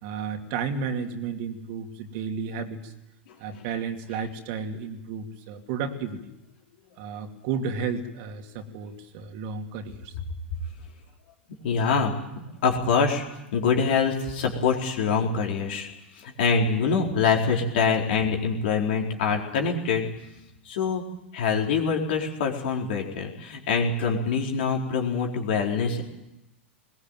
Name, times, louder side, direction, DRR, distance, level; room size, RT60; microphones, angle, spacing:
voice 1, 0.0-2.9 3.4-6.2 7.0-10.1 15.2-15.3, right 5 dB, 50° right, 5 dB, 2.7 m, -32 dB
voice 2, 11.6-13.2 13.5-15.9 16.2-20.1 20.7-21.0 21.3-26.0, left 5 dB, 60° left, 1 dB, 4.2 m, -25 dB
21.0 x 19.5 x 9.2 m, 0.92 s
figure-of-eight pair, 95°, 6 cm